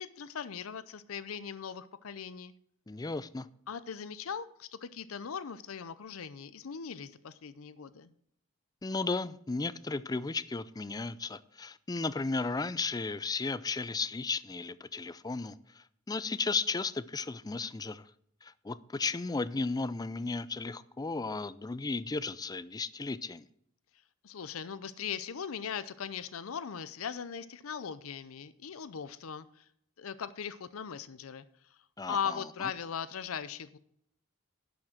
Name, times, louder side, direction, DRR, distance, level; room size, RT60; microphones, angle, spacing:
voice 1, 0.0-2.5 3.7-8.1 24.2-29.7 30.0-31.8 32.1-33.8, left 7 dB, 85° left, 0.6 m, -39 dB
voice 2, 2.9-3.5 8.8-18.1 18.4-23.5 32.0-32.7, left 3 dB, 20° left, 0.4 m, -35 dB
11.5 x 6.2 x 5.9 m
head